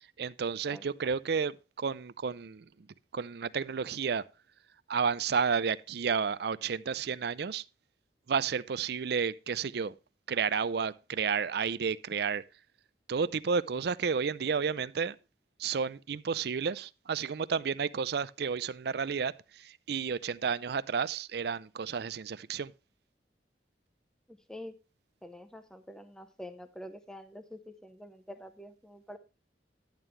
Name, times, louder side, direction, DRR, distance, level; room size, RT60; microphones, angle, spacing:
voice 1, 0.2-2.7 3.1-4.2 4.9-7.6 8.3-9.9 10.3-12.4 13.1-15.2 15.6-22.7, right 6 dB, 65° right, 0.5 m, -31 dB
voice 2, 25.2-29.2, left 1 dB, 5° left, 0.7 m, -46 dB
10.5 x 9.0 x 3.2 m
head